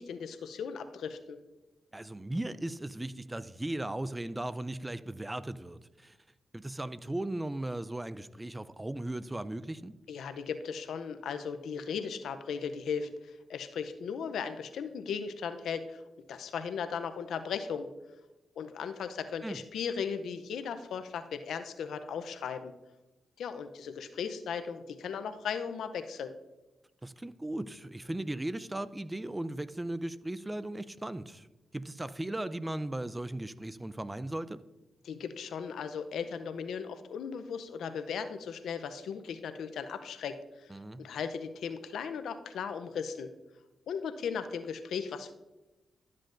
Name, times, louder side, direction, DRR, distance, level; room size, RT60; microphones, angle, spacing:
voice 1, 0.0-1.4 10.1-16.0 16.3-17.9 18.6-22.7 23.4-26.3 35.0-40.7 41.0-43.3 43.9-45.3, left 6 dB, 80° left, 10 dB, 0.6 m, -37 dB
voice 2, 1.9-6.2 6.5-9.9 19.4-19.6 27.0-31.5 31.7-34.6 40.7-41.1, right 1 dB, 15° right, 15 dB, 0.4 m, -37 dB
12.0 x 7.5 x 2.5 m, 1.0 s
cardioid pair, 60°, 0 cm